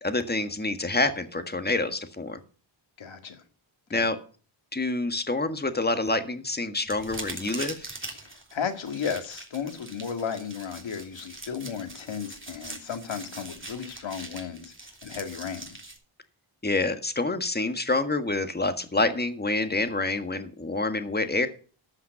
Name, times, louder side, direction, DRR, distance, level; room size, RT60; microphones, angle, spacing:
voice 1, 0.0-2.4 3.9-4.2 4.7-7.8 16.6-21.5, left 2 dB, 20° left, 1.6 m, -27 dB
voice 2, 3.0-3.4 3.9-4.1 8.2-15.6, left 7 dB, 70° left, 2.2 m, -34 dB
sound 1, 6.9-16.0, right 2 dB, 25° right, 3.3 m, -42 dB
13.5 x 5.8 x 6.5 m
cardioid pair, 70°, 48 cm